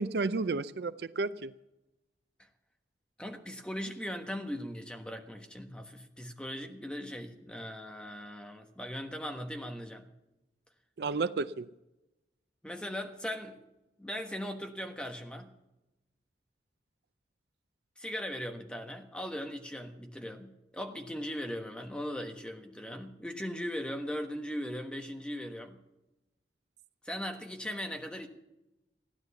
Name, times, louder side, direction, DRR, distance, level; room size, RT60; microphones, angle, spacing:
voice 1, 0.0-1.5 11.0-11.7, right 3 dB, 65° right, 15 dB, 0.5 m, -32 dB
voice 2, 3.2-10.1 12.6-13.6 14.0-15.5 18.0-25.8 27.0-28.3, equal, 5° left, 4 dB, 1.3 m, -39 dB
16.0 x 10.5 x 7.0 m, 0.96 s
head